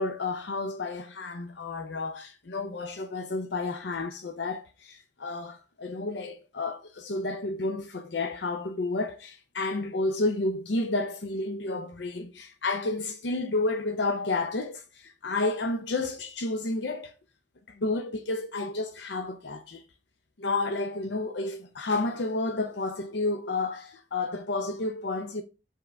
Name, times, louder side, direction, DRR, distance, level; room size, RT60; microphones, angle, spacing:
voice 1, 0.0-17.1 17.7-19.8 20.4-25.4, left 2 dB, 80° left, 0.6 m, -31 dB
5.5 x 3.7 x 5.1 m
head